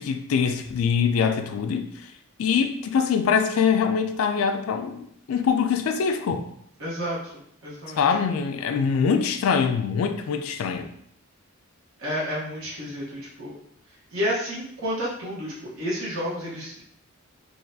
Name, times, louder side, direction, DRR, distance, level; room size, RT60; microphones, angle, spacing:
voice 1, 0.0-2.1 2.4-6.4 8.0-10.9, left 6 dB, 75° left, 6 dB, 0.3 m, -23 dB
voice 2, 6.8-7.2 7.6-8.0 12.0-13.5 14.1-16.8, equal, 70° right, -7 dB, 1.0 m, -30 dB
3.9 x 2.3 x 2.6 m, 0.69 s
head